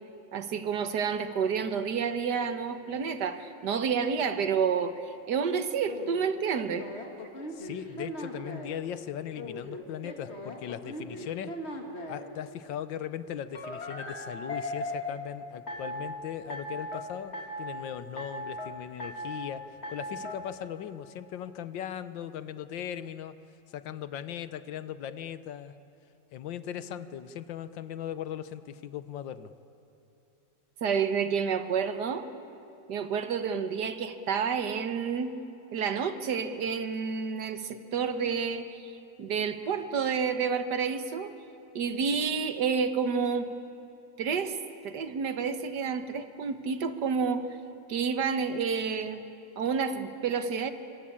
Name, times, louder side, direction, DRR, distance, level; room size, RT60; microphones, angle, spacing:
voice 1, 0.3-4.9 5.3-7.0 30.8-32.3 32.9-35.4 35.7-38.9 39.2-41.3 41.7-43.5 44.2-44.6 44.8-47.4 47.9-49.2 49.6-50.7, right 6 dB, 65° right, 10 dB, 1.7 m, -29 dB
sound 1, 5.8-8.8 9.3-12.3 13.5-15.2 15.7-16.1 16.5-17.0 17.3-17.8 18.2-18.7 19.0-19.5 19.8-20.4, left 1 dB, 35° left, 2.5 m, -38 dB
voice 2, 7.5-11.6 12.1-23.4 23.7-25.7 26.3-29.5, left 10 dB, 85° left, 13 dB, 1.6 m, -38 dB
25.5 x 24.5 x 8.6 m, 2.8 s
omnidirectional pair, 2.0 m